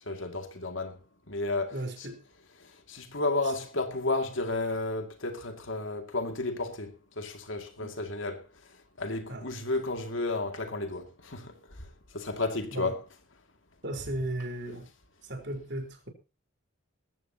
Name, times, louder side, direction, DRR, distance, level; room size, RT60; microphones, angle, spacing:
voice 1, 0.1-1.0 1.3-1.7 2.9-8.4 9.0-11.5 12.1-13.0, left 2 dB, 75° left, 2.4 m, -32 dB
voice 2, 1.7-2.2 3.4-3.5 7.8-8.0 9.3-9.5 12.7-12.9 13.8-14.9 15.2-16.1, right 1 dB, 60° right, 4.3 m, -36 dB
19.5 x 14.5 x 2.9 m
head